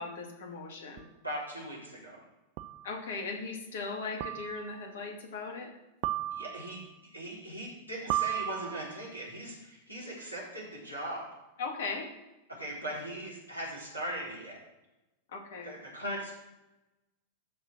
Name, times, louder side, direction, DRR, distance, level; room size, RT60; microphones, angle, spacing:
voice 1, 0.0-1.0 2.8-5.7 11.6-12.1 15.3-15.7, left 4 dB, 60° left, 2 dB, 2.3 m, -38 dB
sound 1, 1.0-1.1 2.6-2.9 4.2-4.8 6.0-6.8 8.1-9.0, right 14 dB, 45° right, 0.5 m, -34 dB
voice 2, 1.2-2.2 6.3-6.8 7.1-11.3 12.5-14.6 15.6-16.3, right 1 dB, 90° right, -7 dB, 3.9 m, -39 dB
12.5 x 4.4 x 6.1 m, 0.99 s
figure-of-eight pair, 90°, 0 cm